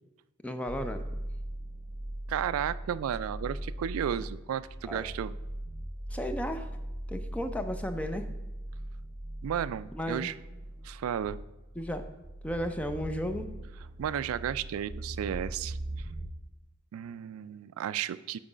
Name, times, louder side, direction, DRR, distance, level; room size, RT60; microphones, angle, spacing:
voice 1, 0.4-1.0 4.8-5.1 6.1-6.7 7.1-8.3 9.9-10.3 11.8-12.0 12.4-13.5, equal, 5° left, 8 dB, 0.4 m, -34 dB
sound 1, 0.7-16.3, right 1 dB, 25° right, 0.8 m, -40 dB
voice 2, 2.3-5.3 9.4-10.3 10.8-11.4 14.0-15.8 16.9-18.4, right 9 dB, 80° right, 16 dB, 0.3 m, -33 dB
7.4 x 4.7 x 4.9 m, 1.0 s
head